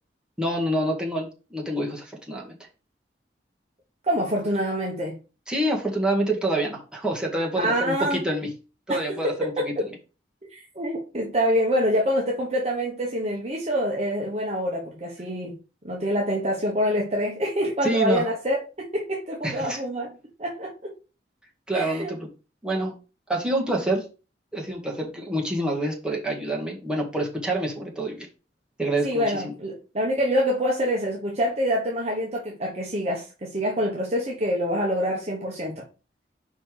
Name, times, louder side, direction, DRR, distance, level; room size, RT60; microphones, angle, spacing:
voice 1, 0.4-2.6 5.5-8.5 8.9-9.9 17.8-18.2 19.4-19.8 21.7-22.3 22.6-22.9 23.3-24.0 24.5-28.3 28.8-29.5, right 1 dB, 5° right, 1.8 m, -27 dB
voice 2, 4.0-5.2 7.6-8.2 8.9-9.9 10.5-15.6 15.8-20.1 20.4-20.9 21.7-22.1 29.0-35.8, equal, 35° right, 1.2 m, -26 dB
5.3 x 4.4 x 4.8 m
head